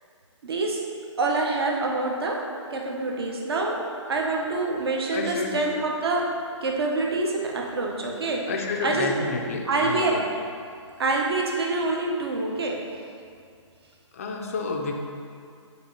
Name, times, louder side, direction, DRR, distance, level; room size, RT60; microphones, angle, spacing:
voice 1, 0.4-0.8 1.2-2.4 2.7-3.8 4.1-6.2 6.6-8.4 8.8-9.2 9.7-10.2 11.0-12.8, right 3 dB, 50° right, 0 dB, 1.0 m, -26 dB
voice 2, 5.1-5.9 8.5-10.2 14.1-14.9, left 4 dB, 30° left, 1 dB, 0.4 m, -30 dB
5.8 x 3.0 x 5.5 m, 2.3 s
hypercardioid pair, 170°, 16 cm